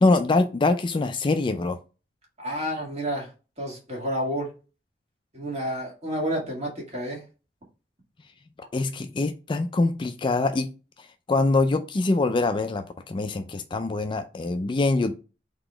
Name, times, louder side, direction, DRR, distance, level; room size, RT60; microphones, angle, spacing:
voice 1, 0.0-1.8 8.7-10.7 11.3-15.1, left 3 dB, 25° left, 0.3 m, -24 dB
voice 2, 2.4-3.3 3.6-4.5 5.3-7.2, equal, 35° right, 1.8 m, -30 dB
4.0 x 2.9 x 4.3 m
head